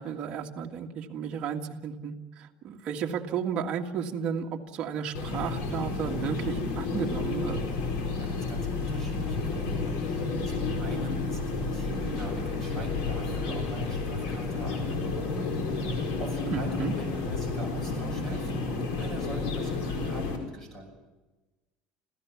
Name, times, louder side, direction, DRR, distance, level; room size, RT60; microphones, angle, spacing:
voice 1, 0.0-7.6 16.5-16.9, right 7 dB, 35° right, 2 dB, 1.9 m, -33 dB
sound 1, 5.1-20.4, left 3 dB, 85° left, 4.6 m, -31 dB
voice 2, 7.9-20.9, right 1 dB, 15° left, 4 dB, 6.0 m, -42 dB
27.0 x 16.5 x 7.2 m, 1.2 s
cardioid pair, 170°, 3 cm